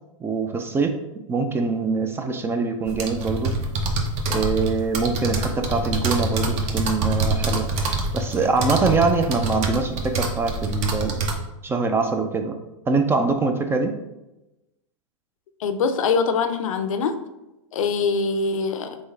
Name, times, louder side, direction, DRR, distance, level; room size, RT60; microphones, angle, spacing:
voice 1, 0.2-0.9 1.3-3.5 4.3-7.7 8.1-11.2 11.6-12.6 12.9-13.9, right 4 dB, 15° right, 6 dB, 0.3 m, -23 dB
sound 1, 2.9-11.3, right 2 dB, 40° right, 0.8 m, -25 dB
voice 2, 15.6-17.1 17.7-19.0, left 5 dB, 75° left, 9 dB, 0.5 m, -23 dB
3.9 x 3.5 x 3.3 m, 0.98 s
hypercardioid pair, 120°, 17 cm